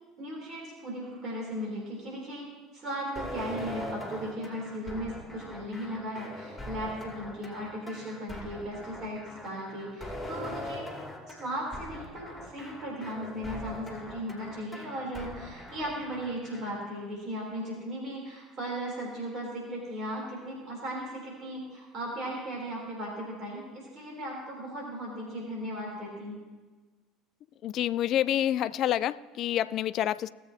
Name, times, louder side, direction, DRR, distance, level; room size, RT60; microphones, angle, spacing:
voice 1, 0.2-10.9 11.3-26.4, equal, 45° right, -3 dB, 3.8 m, -37 dB
sound 1, 3.2-16.8, left 1 dB, ahead, 2.7 m, -41 dB
voice 2, 27.6-30.3, left 11 dB, 50° left, 17 dB, 0.4 m, -28 dB
18.5 x 8.0 x 3.0 m, 1.3 s
figure-of-eight pair, 65°, 0 cm